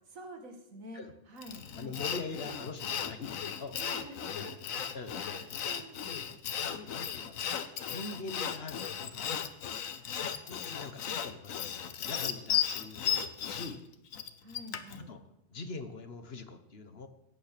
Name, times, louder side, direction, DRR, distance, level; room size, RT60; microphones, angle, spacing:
voice 1, 0.1-2.0 3.7-4.8 5.1-6.0 10.0-10.3 14.4-15.1, right 1 dB, 80° right, 4 dB, 2.3 m, -49 dB
Sawing, 1.4-15.0, left 8 dB, 85° left, 1.3 m, -35 dB
voice 2, 1.8-3.8 4.3-4.5 4.9-5.2 6.1-9.4 10.4-13.8 15.0-15.2 15.5-17.1, left 3 dB, 50° left, 9 dB, 1.3 m, -43 dB
16.0 x 8.8 x 6.7 m, 0.83 s
omnidirectional pair, 1.4 m